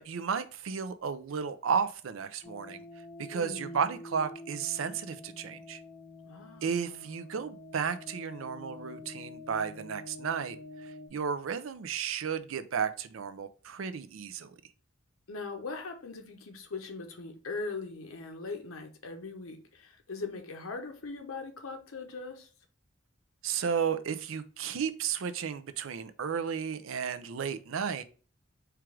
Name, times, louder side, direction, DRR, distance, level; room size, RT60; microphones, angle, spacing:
voice 1, 0.0-2.8 3.2-5.8 6.6-14.6 23.4-28.0, right 6 dB, 75° right, 0.4 m, -33 dB
sound 1, 2.4-11.1, left 2 dB, 45° left, 1.6 m, -47 dB
voice 2, 3.3-3.9 6.2-7.1 15.3-22.5, left 3 dB, 90° left, 0.9 m, -40 dB
4.5 x 2.5 x 4.6 m
head